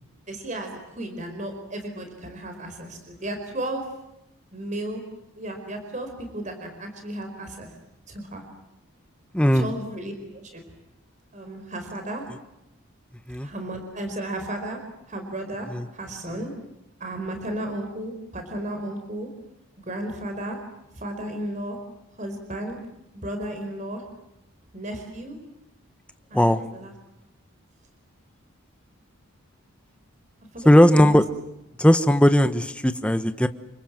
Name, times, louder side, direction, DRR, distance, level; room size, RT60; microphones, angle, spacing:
voice 1, 0.3-3.8 4.5-5.0 5.4-7.7 8.1-8.4 9.5-10.6 11.3-12.2 13.4-14.8 15.1-15.7 15.9-16.5 17.0-19.3 19.8-20.6 21.0-21.8 22.2-22.8 23.1-24.0 24.7-25.4 26.3-26.9 30.5-31.2, right 1 dB, 35° right, 5 dB, 4.6 m, -34 dB
voice 2, 9.3-9.7 13.3-13.5 15.7-15.9 26.3-26.6 30.6-31.3 31.8-33.5, equal, 5° left, 10 dB, 1.1 m, -17 dB
29.0 x 25.0 x 7.6 m, 0.86 s
head